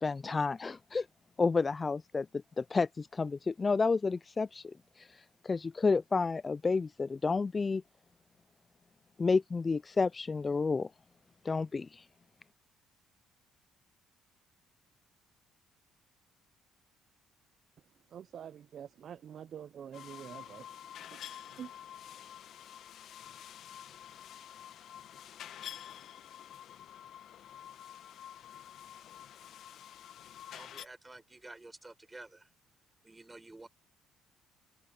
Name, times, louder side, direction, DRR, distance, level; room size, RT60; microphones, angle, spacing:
voice 1, 0.0-1.1 1.4-2.3 2.6-7.8 9.2-10.9 11.4-12.0, left 4 dB, 30° left, 0.3 m, -30 dB
voice 2, 18.1-20.6 21.6-21.7, right 9 dB, 60° right, 0.5 m, -46 dB
sound 1, 19.9-30.9, left 10 dB, 65° left, 1.5 m, -49 dB
voice 3, 30.5-32.5 33.0-33.7, right 2 dB, 15° right, 6.6 m, -51 dB
supercardioid pair, 80°, 0 cm